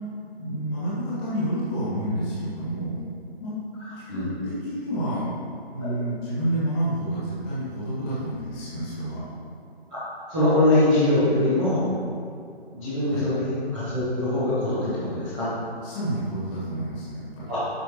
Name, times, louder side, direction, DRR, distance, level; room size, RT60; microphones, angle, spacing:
voice 1, 0.4-3.0 3.4-3.5 3.9-5.3 5.7-9.2 13.0-13.3 15.8-17.5, right 1 dB, 10° left, -9 dB, 1.7 m, -29 dB
voice 2, 10.3-11.9 12.6-15.5 17.5-17.6, left 1 dB, 5° right, -15 dB, 0.8 m, -23 dB
11.5 x 5.6 x 3.0 m, 2.4 s
figure-of-eight pair, 155°, 32 cm